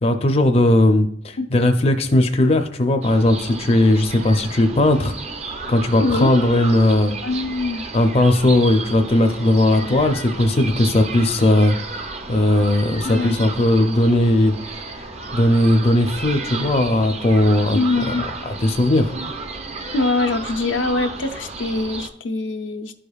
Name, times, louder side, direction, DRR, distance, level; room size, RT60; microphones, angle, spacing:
voice 1, 0.0-7.2 7.9-11.8 12.3-15.0 15.3-18.1 18.5-19.1, left 1 dB, 30° left, 5 dB, 0.5 m, -18 dB
sound 1, 3.0-22.1, right 3 dB, 35° right, 0.6 m, -33 dB
voice 2, 6.0-6.3 7.2-7.8 13.0-13.4 17.7-18.2 19.9-22.9, left 3 dB, 85° left, 6 dB, 0.6 m, -23 dB
11.5 x 5.0 x 2.3 m, 0.69 s
head